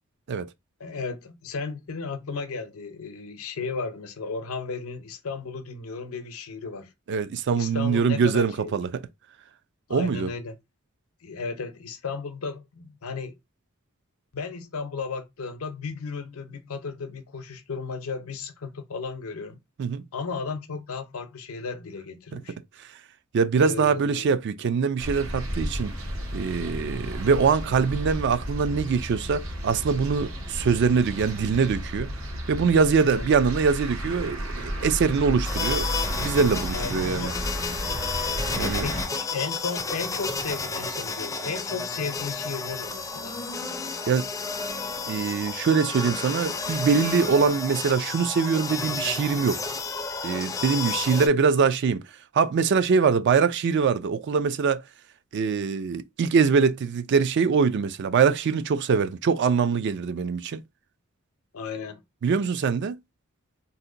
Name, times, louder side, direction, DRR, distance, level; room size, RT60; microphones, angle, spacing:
voice 1, 0.8-6.9 7.6-8.7 9.9-10.6 11.2-13.3 14.3-19.6 20.1-22.6 23.6-24.3 33.0-33.3 36.7-37.3 38.8-43.4 61.5-62.0, left 4 dB, 90° left, 0.6 m, -34 dB
voice 2, 7.1-9.0 9.9-10.3 19.8-20.0 22.3-22.4 23.3-25.9 26.3-32.1 32.5-35.9 36.1-37.3 38.6-38.9 44.1-44.3 45.1-49.6 50.2-52.0 52.3-54.8 55.3-60.6 62.2-63.0, right 5 dB, 55° right, 0.4 m, -23 dB
sound 1, 25.0-39.1, equal, 70° right, 1.0 m, -33 dB
sound 2, 35.4-51.3, left 4 dB, 15° left, 0.4 m, -31 dB
2.7 x 2.1 x 3.7 m
head